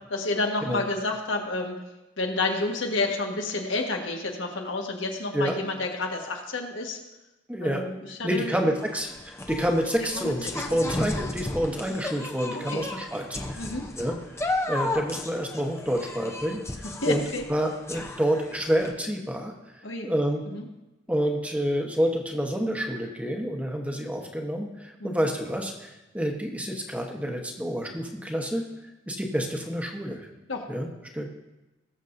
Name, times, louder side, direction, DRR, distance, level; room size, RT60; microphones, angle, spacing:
voice 1, 0.1-1.8 2.2-7.0 7.6-8.5 10.2-10.5 12.5-12.8 13.6-13.8 17.0-17.4 19.8-20.1 20.5-20.6 25.0-25.1 30.5-30.7, left 2 dB, 90° left, 1 dB, 1.5 m, -30 dB
voice 2, 7.5-7.8 8.2-14.2 14.7-17.2 17.5-19.5 20.0-20.4 21.1-28.7 29.1-30.3 30.7-30.9 31.1-31.3, equal, 10° right, 1 dB, 1.1 m, -28 dB
sound 1, 8.8-18.9, left 2 dB, 15° left, 0.7 m, -34 dB
19.5 x 7.2 x 2.7 m, 1.0 s
head